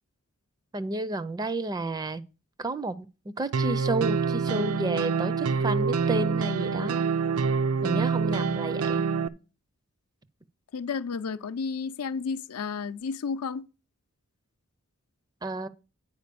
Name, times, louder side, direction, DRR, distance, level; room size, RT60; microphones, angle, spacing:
voice 1, 0.7-2.2 2.6-7.1 7.8-9.0 15.4-15.7, right 2 dB, 15° right, 0.4 m, -31 dB
sound 1, 3.5-9.3, right 5 dB, 80° right, 0.5 m, -26 dB
voice 2, 10.7-13.6, left 5 dB, 85° left, 0.5 m, -32 dB
9.5 x 4.8 x 6.8 m
head